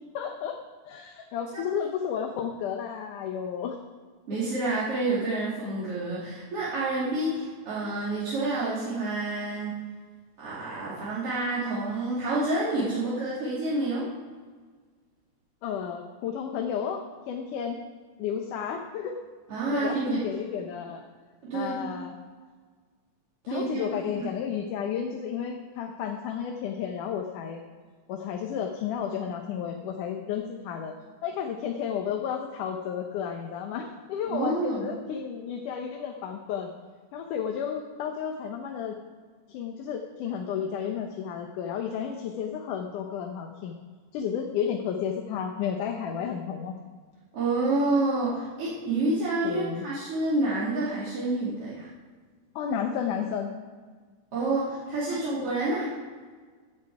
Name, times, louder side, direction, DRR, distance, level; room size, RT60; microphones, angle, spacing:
voice 1, 0.1-0.6 0.9-3.8 15.6-17.8 18.2-19.2 19.7-21.0 21.5-22.2 23.5-27.6 28.1-30.9 31.2-36.7 37.1-39.0 39.5-43.8 44.1-46.8 49.4-49.9 52.6-53.5 55.1-55.2, left 8 dB, 85° left, 3 dB, 2.5 m, -32 dB
voice 2, 4.3-9.8 10.4-14.1 19.5-20.2 21.5-21.9 23.5-23.9 24.2-24.3 34.2-34.9 47.3-51.9 54.3-55.9, right 2 dB, 50° right, -9 dB, 3.7 m, -28 dB
16.0 x 10.0 x 4.9 m, 1.5 s
omnidirectional pair, 3.5 m